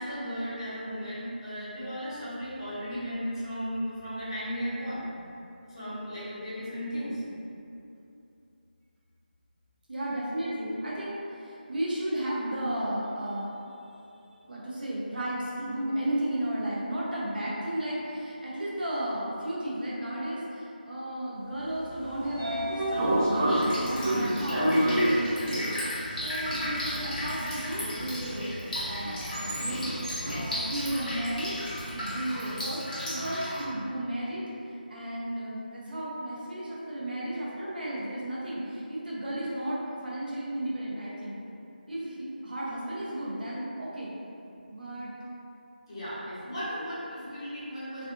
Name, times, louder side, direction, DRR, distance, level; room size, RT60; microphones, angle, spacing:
voice 1, 0.0-5.1 5.7-7.2 45.9-48.1, equal, 25° left, -12 dB, 0.9 m, -35 dB
voice 2, 9.9-13.7 14.1-24.7 25.0-25.7 26.2-31.6 31.9-34.4 34.9-41.4 41.9-44.1 44.7-45.1, right 1 dB, 60° right, -7 dB, 0.9 m, -34 dB
Train / Sliding door, 21.8-31.9, right 1 dB, 15° right, 0.3 m, -30 dB
Drip, 23.5-33.6, left 1 dB, 55° left, 1.1 m, -35 dB
3.3 x 2.5 x 2.5 m, 2.7 s
figure-of-eight pair, 175°, 6 cm